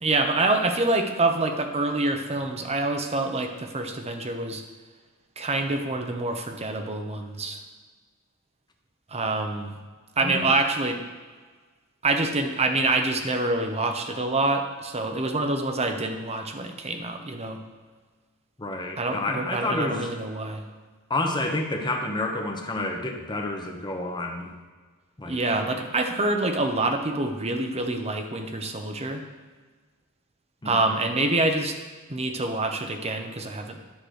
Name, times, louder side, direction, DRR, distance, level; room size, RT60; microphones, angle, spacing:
voice 1, 0.0-4.6 5.4-7.6 9.1-9.7 10.2-11.0 12.0-17.6 19.0-20.6 25.3-29.3 30.6-31.8 32.1-33.8, right 2 dB, 30° right, 5 dB, 0.9 m, -26 dB
voice 2, 18.6-20.1 21.1-24.6 25.2-25.6 30.6-30.9, left 2 dB, 20° left, 2 dB, 1.0 m, -29 dB
10.5 x 4.8 x 6.5 m, 1.4 s
head